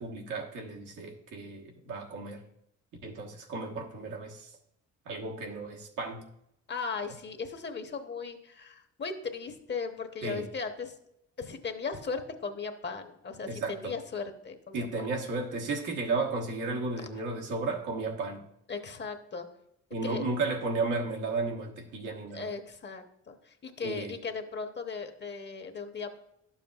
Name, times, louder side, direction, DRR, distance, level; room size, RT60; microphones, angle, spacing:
voice 1, 0.0-2.4 3.0-4.6 5.0-6.3 10.2-10.5 13.5-13.9 14.7-18.4 19.9-22.5 23.8-24.1, right 3 dB, 90° right, 0 dB, 1.3 m, -34 dB
voice 2, 6.7-10.9 11.4-15.1 18.7-19.5 20.0-20.2 22.3-26.2, left 5 dB, 35° left, 7 dB, 0.9 m, -37 dB
11.0 x 7.2 x 2.3 m, 0.77 s
cardioid pair, 90°, 30 cm